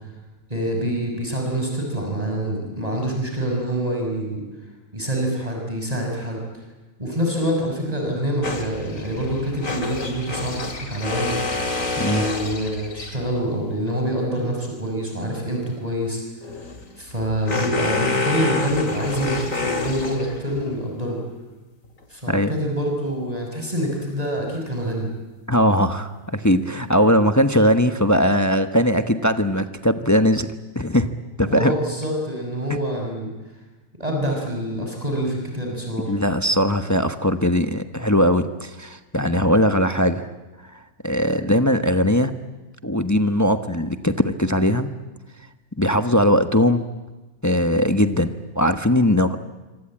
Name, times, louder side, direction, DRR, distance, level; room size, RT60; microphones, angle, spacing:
voice 1, 0.5-4.4 4.9-6.4 7.0-11.3 12.0-16.2 17.0-21.2 22.1-25.1 31.5-33.3 34.0-36.1, right 1 dB, 25° right, 1 dB, 6.2 m, -26 dB
sound 1, 8.4-13.4 16.4-20.6, left 3 dB, 75° left, 2.8 m, -28 dB
voice 2, 25.5-30.5 30.7-31.1 31.4-31.7 36.1-40.3 41.0-42.3 42.8-44.9 45.8-46.8 47.4-49.4, equal, 15° left, 9 dB, 1.1 m, -19 dB
26.5 x 25.5 x 8.9 m, 1.2 s
omnidirectional pair, 1.4 m